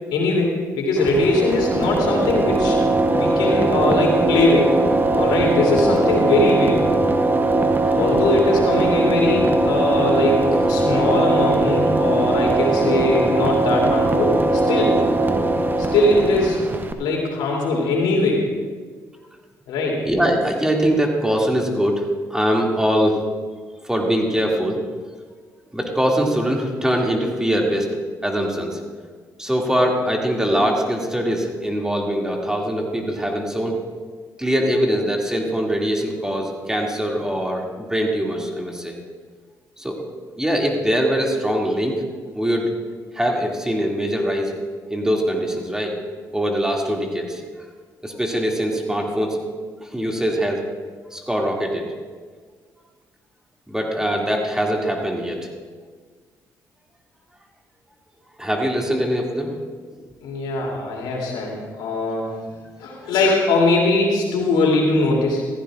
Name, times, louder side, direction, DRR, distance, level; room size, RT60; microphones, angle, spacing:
voice 1, 0.1-2.8 3.1-4.7 5.1-6.8 8.0-10.4 10.7-14.9 15.9-16.6 17.0-18.4 19.7-20.0 60.2-62.3 62.8-65.4, left 2 dB, 85° left, -1 dB, 2.9 m, -20 dB
sound 1, 1.0-16.9, right 2 dB, 25° right, 1.0 m, -20 dB
voice 2, 20.0-22.0 22.3-23.2 23.8-24.8 25.7-27.9 28.2-28.8 29.4-33.8 34.4-39.0 39.8-40.0 40.4-42.0 42.4-42.7 43.1-44.5 44.9-46.0 46.3-47.4 48.0-49.4 49.8-50.6 51.1-51.8 53.7-55.4 58.4-59.5 63.0-63.1, equal, 10° right, 0 dB, 2.3 m, -22 dB
15.0 x 15.0 x 2.5 m, 1.5 s
supercardioid pair, 65°, 8 cm